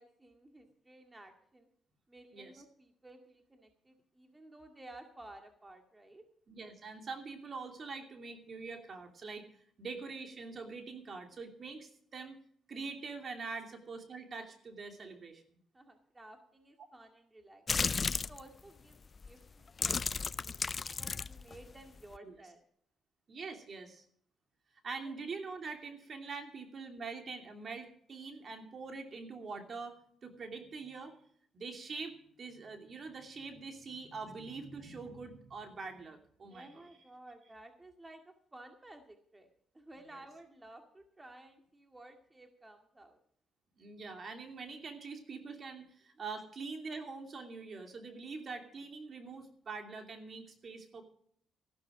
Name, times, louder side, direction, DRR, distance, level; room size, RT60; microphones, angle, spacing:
voice 1, 0.0-1.7 2.1-6.3 13.5-13.7 15.7-19.0 19.2-22.6 25.0-25.2 36.5-39.5 39.7-43.2, right 1 dB, 15° right, 4 dB, 2.1 m, -55 dB
voice 2, 6.5-9.5 9.8-12.4 12.7-15.4 22.2-22.3 23.3-24.0 24.8-31.2 31.5-36.8 40.1-40.2 43.8-51.0, right 4 dB, 45° right, 5 dB, 2.8 m, -44 dB
sound 1, 17.7-18.4 19.2-19.3 19.7-22.2, left 5 dB, 35° left, 0.5 m, -34 dB
14.5 x 12.5 x 5.0 m, 0.63 s
cardioid pair, 90°, 0 cm